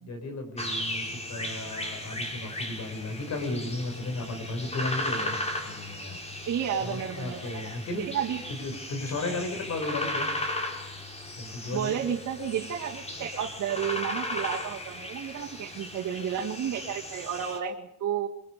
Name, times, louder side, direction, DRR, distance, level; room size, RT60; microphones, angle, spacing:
voice 1, 0.0-5.4 5.6-6.2 6.8-8.1 8.6-10.3 11.4-12.0, left 2 dB, 60° left, 5 dB, 6.9 m, -34 dB
sound 1, 0.6-17.6, left 1 dB, 20° left, 5.0 m, -36 dB
voice 2, 6.5-8.4 9.4-9.5 11.7-18.3, right 9 dB, 70° right, -3 dB, 2.3 m, -32 dB
24.5 x 21.5 x 5.3 m, 0.81 s
cardioid pair, 90°, 30 cm